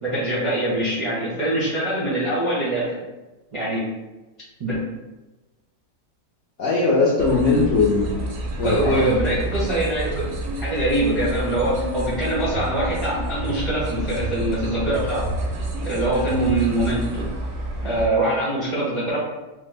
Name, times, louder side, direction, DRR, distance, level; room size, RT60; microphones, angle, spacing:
voice 1, 0.0-3.0 3.5-3.8 4.6-4.8 8.6-10.3 10.6-15.2 15.8-17.3 17.8-19.2, right 1 dB, 35° right, -9 dB, 0.5 m, -23 dB
voice 2, 6.6-8.1 8.6-9.3, left 3 dB, 65° left, -6 dB, 0.7 m, -19 dB
sound 1, 7.2-18.1, right 1 dB, 65° right, 0.8 m, -29 dB
3.2 x 2.0 x 3.2 m, 1.1 s
omnidirectional pair, 1.8 m